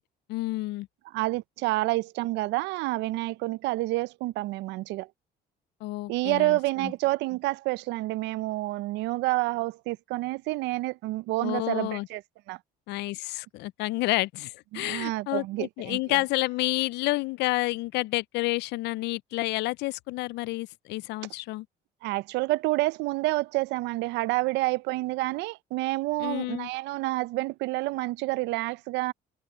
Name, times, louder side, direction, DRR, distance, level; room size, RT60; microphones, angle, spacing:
voice 1, 0.3-0.9 5.8-6.9 11.4-12.1 12.9-21.7 26.2-26.7, left 20 dB, 75° left, 0.4 m, -30 dB
voice 2, 1.1-5.1 6.1-12.2 12.5-12.6 14.7-16.2 22.0-29.1, right 20 dB, 80° right, 0.5 m, -28 dB
cardioid pair, 130°, 18 cm